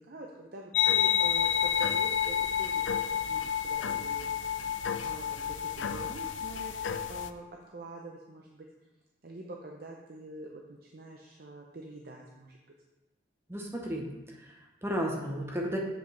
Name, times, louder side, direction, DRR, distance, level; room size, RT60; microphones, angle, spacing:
voice 1, 0.0-2.8 3.1-4.3 4.7-4.8 5.0-8.7 9.2-12.6, right 2 dB, 55° right, 0 dB, 0.6 m, -45 dB
sound 1, 0.7-7.3, left 9 dB, 85° left, 0.4 m, -29 dB
voice 2, 13.5-15.8, equal, 15° right, 0 dB, 0.8 m, -34 dB
7.8 x 6.4 x 3.3 m, 1.1 s
head